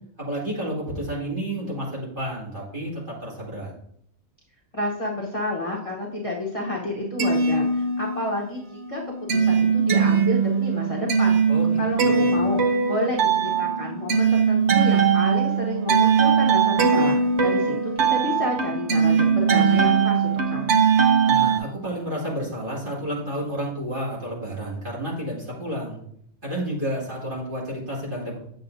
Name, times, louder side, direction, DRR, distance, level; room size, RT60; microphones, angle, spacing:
voice 1, 0.2-3.7 11.5-12.4 21.3-26.0 26.4-28.4, equal, 35° right, -6 dB, 2.7 m, -30 dB
voice 2, 4.7-9.0 9.3-11.4 11.8-12.6 12.9-20.8, left 2 dB, 25° left, -4 dB, 0.9 m, -30 dB
sound 1, 7.0-8.4 8.7-21.6, right 6 dB, 55° right, 1.1 m, -20 dB
7.9 x 7.6 x 2.7 m, 0.68 s
omnidirectional pair, 1.5 m